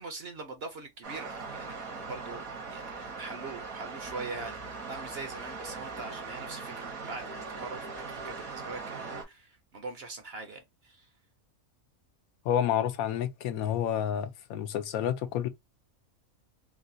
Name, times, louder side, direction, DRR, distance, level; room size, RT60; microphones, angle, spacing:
voice 1, 0.0-2.9 3.2-7.3 7.6-11.1, right 3 dB, 55° right, 0.8 m, -42 dB
sound 1, 1.0-9.2, right 4 dB, 70° right, 1.6 m, -40 dB
voice 2, 12.4-15.5, left 9 dB, 80° left, 1.1 m, -29 dB
3.9 x 2.2 x 2.6 m
omnidirectional pair, 1.5 m